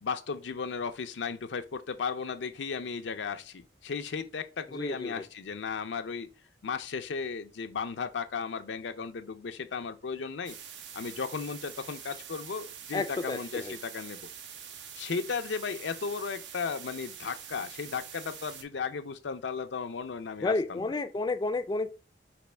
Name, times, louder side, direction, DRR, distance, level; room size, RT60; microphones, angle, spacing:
voice 1, 0.0-6.3 6.6-10.6 10.9-14.3 15.0-20.8, left 5 dB, 90° left, 0.5 m, -35 dB
voice 2, 4.7-5.3 12.9-13.8 20.4-21.9, left 3 dB, 25° left, 0.3 m, -31 dB
sound 1, 10.5-18.6, right 8 dB, 80° right, 0.7 m, -45 dB
5.1 x 3.0 x 3.3 m
head